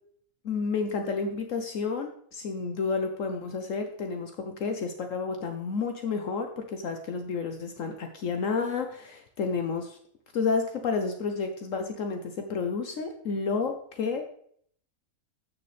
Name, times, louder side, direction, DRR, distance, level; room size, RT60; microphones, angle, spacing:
voice 1, 0.4-10.0 10.3-14.2, left 4 dB, 65° left, 5 dB, 1.2 m, -30 dB
13.0 x 6.8 x 3.3 m, 0.63 s
omnidirectional pair, 1.5 m